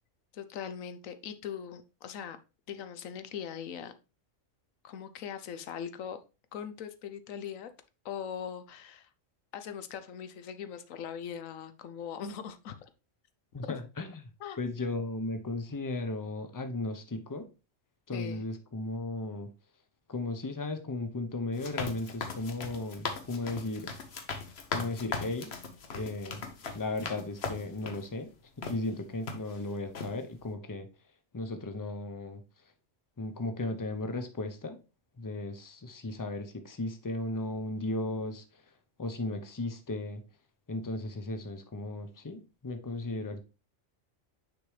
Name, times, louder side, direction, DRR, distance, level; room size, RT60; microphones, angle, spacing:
voice 1, 0.3-2.4 2.7-3.9 4.8-6.2 6.5-7.7 8.0-9.1 9.5-12.8 13.7-13.8 14.4-14.6 18.1-18.4, left 8 dB, 90° left, 10 dB, 1.1 m, -40 dB
voice 2, 13.5-14.3 14.6-17.5 18.1-19.5 20.1-23.9 24.7-25.5 25.9-26.4 26.7-28.3 28.7-30.9 31.3-32.4 33.2-34.8 35.2-38.6 39.0-40.2 40.7-43.4, left 2 dB, 20° left, 7 dB, 0.6 m, -35 dB
sound 1, 21.5-28.1 28.6-28.8 29.3-29.6 29.9-30.1, left 4 dB, 55° left, 1.1 m, -38 dB
6.5 x 5.2 x 3.2 m, 0.30 s
omnidirectional pair, 1.3 m